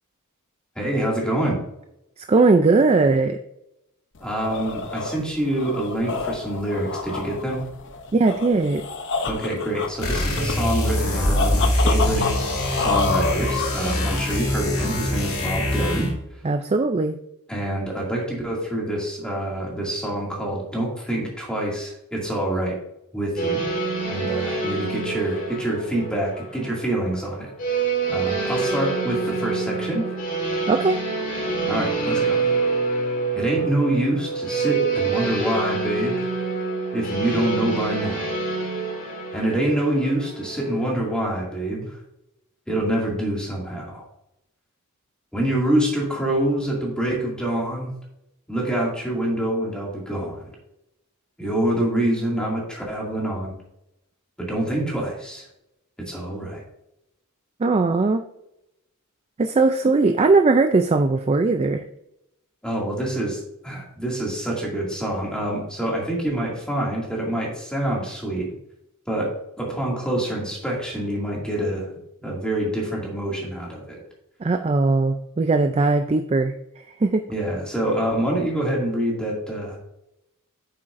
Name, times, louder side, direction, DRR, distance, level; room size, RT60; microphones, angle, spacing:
voice 1, 0.8-1.6 4.2-7.6 9.2-12.3 12.7-16.1 17.5-22.8 23.1-23.6 24.1-27.5 27.8-30.1 31.7-32.4 33.3-36.3 36.9-38.3 39.3-42.0 42.7-44.0 45.3-47.9 48.5-50.5 51.4-53.5 54.4-55.5 56.0-56.6 62.6-68.5 69.1-71.9 72.2-74.0 77.3-79.8, right 1 dB, 5° left, -3 dB, 2.3 m, -26 dB
voice 2, 2.2-3.4 8.1-8.9 16.4-17.2 30.7-31.0 57.6-58.2 59.4-61.8 72.3-72.4 74.4-77.2, right 3 dB, 30° right, 7 dB, 0.4 m, -19 dB
sound 1, 4.2-14.5, left 4 dB, 55° left, 0.7 m, -29 dB
sound 2, 10.0-16.2, left 1 dB, 70° left, 2.8 m, -24 dB
sound 3, 23.4-41.4, right 4 dB, 40° left, 1.7 m, -27 dB
8.8 x 7.3 x 2.6 m, 0.82 s
head